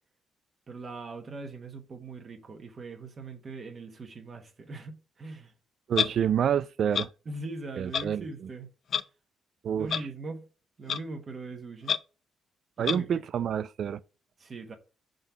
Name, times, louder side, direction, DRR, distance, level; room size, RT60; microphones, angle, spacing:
voice 1, 0.7-5.5 7.3-8.7 9.7-10.4 10.8-12.0 12.8-13.1 13.4-13.5 14.4-14.8, right 3 dB, 40° right, 1.1 m, -40 dB
Clock, 5.9-6.1 6.9-7.1 7.9-8.0 8.9-9.0 9.9-10.0 10.9-11.0 11.9-12.0 12.9-13.0, left 8 dB, 60° left, 0.4 m, -27 dB
voice 2, 5.9-7.1 7.8-8.3 9.6-10.0 12.8-14.0, right 8 dB, 60° right, 0.4 m, -28 dB
5.4 x 3.9 x 4.4 m
cardioid pair, 90°, 0 cm